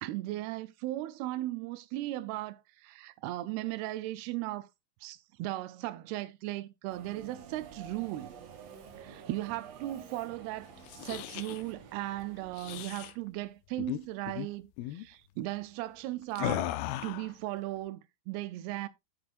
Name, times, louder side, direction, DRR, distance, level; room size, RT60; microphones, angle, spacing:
voice 1, 0.0-4.7 5.0-8.3 9.0-16.7 17.0-18.9, right 16 dB, 90° right, 2.7 m, -37 dB
Subway metro underground, 6.9-13.1, right 6 dB, 60° right, 2.0 m, -50 dB
sound 1, 10.8-11.6 12.5-13.1 13.8-14.0 14.3-14.5 14.8-15.0 16.4-17.3, left 14 dB, 80° left, 2.6 m, -36 dB
12.5 x 7.0 x 2.5 m
omnidirectional pair, 4.5 m